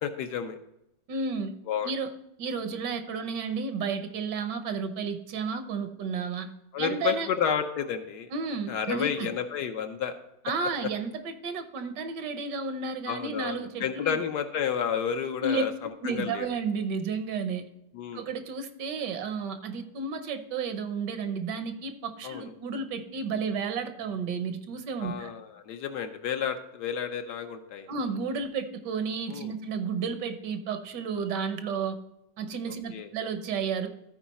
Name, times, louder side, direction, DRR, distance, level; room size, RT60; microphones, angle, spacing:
voice 1, 0.0-0.6 1.7-1.9 6.7-8.3 8.7-10.1 13.1-16.5 17.9-18.3 22.2-22.5 25.0-27.9 29.3-29.5 32.7-33.1, left 7 dB, 70° left, 7 dB, 1.3 m, -31 dB
voice 2, 1.1-1.5 1.8-2.1 2.4-6.5 6.8-7.3 8.3-9.3 10.4-14.2 15.4-15.6 16.0-17.6 18.1-25.3 27.9-32.0 32.4-33.9, right 5 dB, 70° right, 8 dB, 1.4 m, -32 dB
13.5 x 4.7 x 4.1 m, 0.85 s
omnidirectional pair, 2.0 m